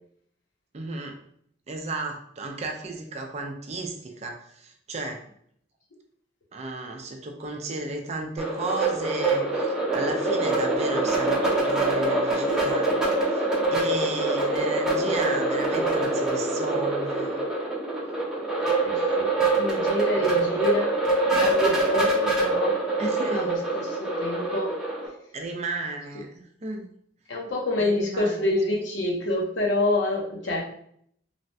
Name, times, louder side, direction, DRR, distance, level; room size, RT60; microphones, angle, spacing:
voice 1, 0.7-1.2 1.7-5.2 6.5-12.9 13.3-17.4 20.2-20.5 23.0-23.5 25.3-26.9 27.8-28.4, right 2 dB, 35° right, 3 dB, 0.4 m, -34 dB
sound 1, 8.4-25.1, right 2 dB, 5° right, 0.7 m, -25 dB
voice 2, 18.8-19.3 19.6-21.0 21.4-22.8 23.3-24.7 27.3-30.6, left 2 dB, 80° left, -1 dB, 0.8 m, -27 dB
3.2 x 2.1 x 2.6 m, 0.66 s
head